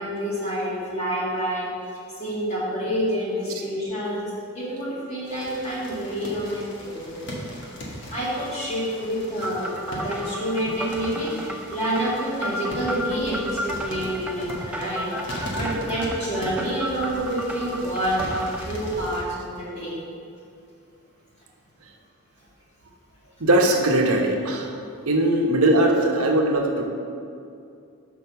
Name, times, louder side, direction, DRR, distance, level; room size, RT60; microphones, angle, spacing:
voice 1, 0.0-1.7 2.2-4.3 4.5-7.5 8.1-19.9, equal, 30° left, -7 dB, 2.1 m, -28 dB
sound 1, 5.2-19.2, equal, 55° left, 1.5 m, -38 dB
sound 2, 9.4-18.6, equal, 5° right, 0.4 m, -34 dB
voice 2, 23.4-24.7 25.1-26.9, right 1 dB, 75° right, 1 dB, 0.9 m, -20 dB
6.3 x 5.3 x 6.8 m, 2.5 s
head